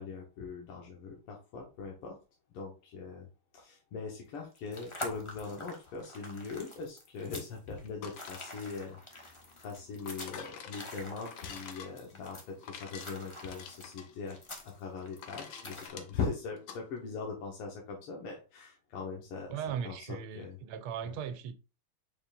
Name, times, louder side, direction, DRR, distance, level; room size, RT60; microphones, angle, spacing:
voice 1, 0.0-2.2 2.5-3.3 3.5-14.4 14.6-19.5 19.8-20.6 21.1-21.2, left 5 dB, 85° left, 2.1 m, -41 dB
sound 1, 4.3-15.9, left 1 dB, 20° left, 0.7 m, -46 dB
sound 2, 7.9-16.8, left 7 dB, 65° left, 1.5 m, -48 dB
voice 2, 19.5-21.6, right 8 dB, 75° right, 1.5 m, -38 dB
6.8 x 5.6 x 2.5 m
omnidirectional pair, 2.4 m